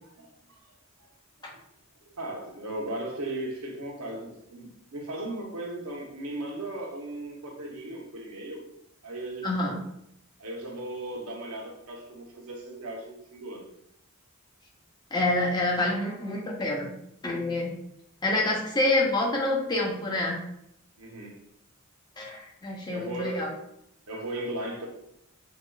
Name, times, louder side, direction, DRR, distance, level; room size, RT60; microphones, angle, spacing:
voice 1, 0.1-0.6 1.0-1.1 1.5-1.6 2.0-8.6 9.0-9.6 10.4-13.7 21.0-21.4 22.9-23.6 24.1-24.9, right 1 dB, 90° right, 0 dB, 0.8 m, -37 dB
voice 2, 9.4-9.8 15.1-16.9 17.2-17.7 18.2-20.4 22.2-23.5, left 2 dB, 20° left, -1 dB, 0.6 m, -27 dB
4.8 x 2.3 x 2.3 m, 0.76 s
head